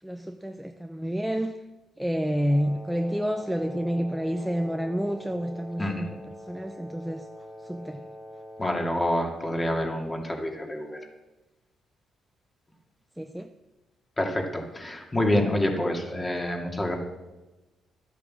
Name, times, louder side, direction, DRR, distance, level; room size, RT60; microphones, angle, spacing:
voice 1, 0.0-1.7 2.0-7.3 7.6-8.1 13.2-13.5, equal, ahead, 6 dB, 0.6 m, -29 dB
Wind instrument woodwind instrument, 2.5-8.9, equal, 55° left, 2.7 m, -44 dB
voice 2, 8.6-11.0 14.2-17.0, left 1 dB, 20° left, 2 dB, 2.4 m, -27 dB
12.5 x 8.3 x 7.6 m, 1.1 s
cardioid pair, 90°, 0 cm